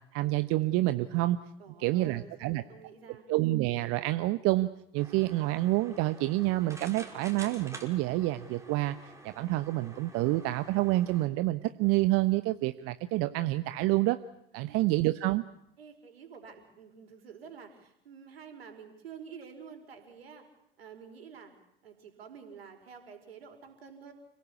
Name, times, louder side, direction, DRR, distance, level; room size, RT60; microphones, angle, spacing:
voice 1, 0.1-1.4 1.8-2.6 3.3-9.0 9.2-14.2 14.5-15.4, right 17 dB, 50° right, 12 dB, 1.0 m, -28 dB
voice 2, 1.6-3.3 14.5-14.9 15.8-20.4 20.8-21.6 21.8-24.1, right 6 dB, 80° right, 6 dB, 4.8 m, -49 dB
sound 1, 5.0-11.3, right 2 dB, 10° right, 5.1 m, -49 dB
30.0 x 17.5 x 8.5 m, 0.80 s
figure-of-eight pair, 75°, 30 cm